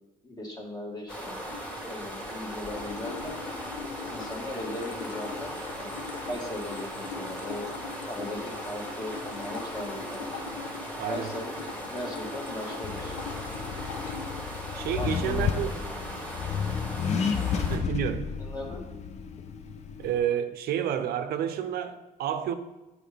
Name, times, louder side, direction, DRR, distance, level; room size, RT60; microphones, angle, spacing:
voice 1, 0.2-1.4 1.8-3.4 4.1-6.0 6.3-7.7 8.1-10.4 11.1-13.1 14.9-15.6 18.4-18.8, left 1 dB, 25° left, 0 dB, 1.6 m, -38 dB
sound 1, 1.1-17.8, equal, 5° left, 1.7 m, -38 dB
sound 2, 2.7-14.3, left 4 dB, 90° left, 1.1 m, -41 dB
voice 2, 11.0-11.3 14.7-15.7 17.7-18.3 20.0-22.5, right 9 dB, 65° right, 10 dB, 0.6 m, -30 dB
Accelerating revving vroom, 12.8-20.2, left 6 dB, 40° left, 0.5 m, -32 dB
7.8 x 4.8 x 3.4 m, 1.1 s
cardioid pair, 110°, 17 cm